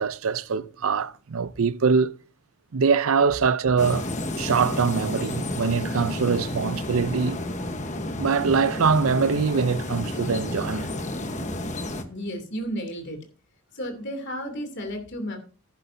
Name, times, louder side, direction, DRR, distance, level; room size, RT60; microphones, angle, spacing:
voice 1, 0.0-2.1 2.7-4.1 4.4-7.4 8.2-10.9, right 5 dB, 70° right, 0.5 m, -23 dB
sound 1, 3.8-12.0, left 1 dB, 35° left, 1.1 m, -31 dB
voice 2, 12.1-13.2 13.7-15.4, equal, 50° left, 2.9 m, -32 dB
14.5 x 10.5 x 2.7 m
head